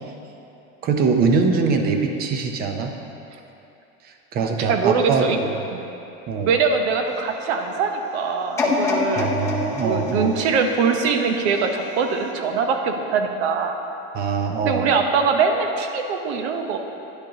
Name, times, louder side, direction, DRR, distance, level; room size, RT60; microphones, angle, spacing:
voice 1, 0.8-2.9 4.3-5.5 6.3-6.5 9.2-10.4 14.1-15.0, right 4 dB, 30° right, 5 dB, 0.6 m, -22 dB
voice 2, 4.4-5.4 5.7-5.9 6.5-9.3 9.8-13.8 14.6-16.8, right 5 dB, 85° right, 5 dB, 0.9 m, -22 dB
sound 1, 8.6-11.6 12.2-12.3, left 3 dB, 10° left, 0.7 m, -26 dB
10.5 x 8.1 x 2.8 m, 2.9 s
supercardioid pair, 155°, 32 cm